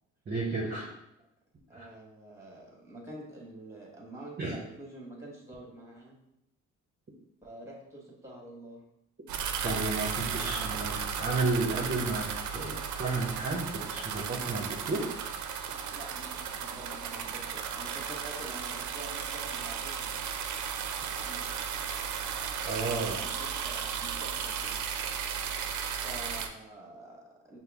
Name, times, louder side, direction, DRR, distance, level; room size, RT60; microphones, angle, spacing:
voice 1, 0.3-0.9 1.7-1.9 4.4-4.6 9.6-15.1 22.6-23.2, right 3 dB, 30° right, -2 dB, 0.7 m, -32 dB
voice 2, 1.7-6.2 7.4-8.8 10.4-10.7 15.9-20.3 21.1-21.5 23.1-24.8 26.0-27.6, right 1 dB, 10° right, -2 dB, 1.4 m, -47 dB
sound 1, 9.3-26.5, right 7 dB, 75° right, 0.5 m, -35 dB
5.6 x 2.1 x 3.5 m, 0.82 s
cardioid pair, 90°, 30 cm